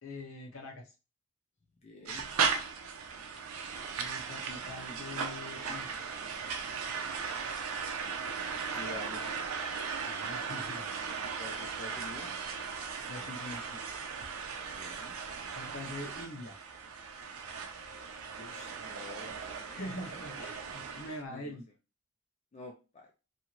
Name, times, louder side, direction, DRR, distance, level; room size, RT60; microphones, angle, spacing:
voice 1, 0.0-0.8 3.9-5.9 10.0-10.9 13.0-13.8 15.5-16.6 19.7-21.6, left 1 dB, 65° left, 1 dB, 0.8 m, -43 dB
voice 2, 1.8-2.3 8.6-9.5 11.2-12.3 14.7-15.2 18.4-20.1 21.3-21.6 22.5-23.1, left 3 dB, 30° left, 1 dB, 0.4 m, -48 dB
sound 1, 2.1-21.2, right 5 dB, 85° right, 0.5 m, -37 dB
2.7 x 2.4 x 2.9 m, 0.31 s
head